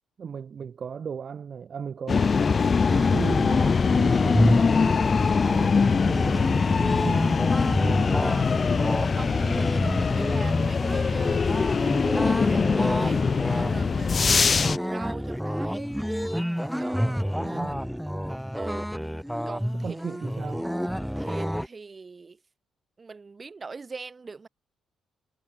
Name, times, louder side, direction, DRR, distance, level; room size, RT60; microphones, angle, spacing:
voice 1, 0.2-4.8 5.6-8.5 17.0-17.8 19.8-20.7, right 7 dB, 50° right, 1.6 m, -37 dB
sound 1, 2.1-14.8, left 5 dB, 40° left, 0.7 m, -23 dB
sound 2, 2.9-21.7, equal, ahead, 0.5 m, -29 dB
voice 2, 9.1-11.7 12.1-13.2 13.5-15.9 16.8-17.9 18.5-18.9 19.5-19.9 21.2-22.4 23.0-24.5, right 4 dB, 30° right, 6.1 m, -42 dB
Cough, 10.0-10.6 11.7-13.3, left 15 dB, 90° left, 7.8 m, -55 dB
cardioid pair, 90°, 0 cm